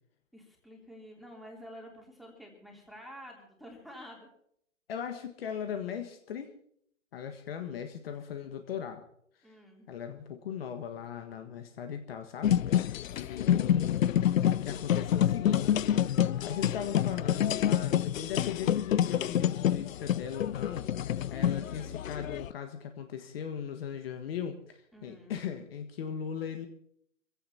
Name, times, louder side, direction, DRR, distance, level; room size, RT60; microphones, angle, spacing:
voice 1, 0.3-4.3 9.4-9.9 24.9-25.4, equal, ahead, -1 dB, 3.2 m, -49 dB
voice 2, 4.9-6.5 7.1-9.0 9.9-14.0 14.5-15.6 15.9-20.9 21.3-26.7, left 8 dB, 50° left, 6 dB, 1.7 m, -38 dB
sound 1, 12.4-22.5, left 10 dB, 85° left, 0.5 m, -28 dB
24.5 x 16.0 x 2.9 m, 0.67 s
hypercardioid pair, 140°, 39 cm